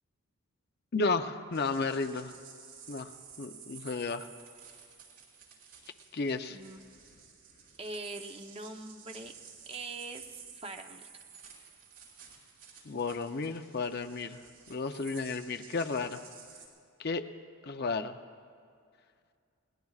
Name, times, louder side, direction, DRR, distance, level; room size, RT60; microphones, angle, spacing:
voice 1, 0.9-2.3 2.9-3.1 3.4-4.3 6.1-6.6 12.8-14.4 14.7-16.2 17.0-17.3 17.6-18.2, left 3 dB, 50° left, 7 dB, 0.6 m, -33 dB
sound 1, 1.5-16.7, right 7 dB, 65° right, 4.5 m, -53 dB
voice 2, 6.5-6.8 7.8-9.3 9.7-11.1, right 2 dB, 25° right, 5 dB, 0.8 m, -42 dB
30.0 x 19.5 x 2.4 m, 2.3 s
head